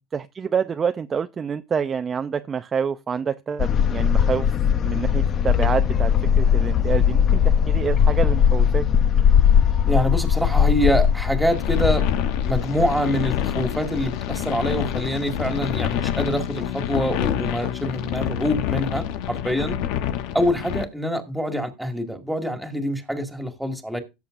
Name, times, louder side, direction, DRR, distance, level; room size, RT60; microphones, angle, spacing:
voice 1, 0.1-4.5 4.8-8.8, right 6 dB, 25° right, 0.5 m, -27 dB
sound 1, 3.6-15.6 15.9-16.0 16.3-16.4, left 8 dB, 40° left, 0.7 m, -20 dB
voice 2, 9.9-19.8 20.3-24.0, equal, 5° right, 2.0 m, -25 dB
sound 2, 11.5-20.8, left 10 dB, 70° left, 0.9 m, -27 dB
16.5 x 7.0 x 2.6 m
supercardioid pair, 115°, 0 cm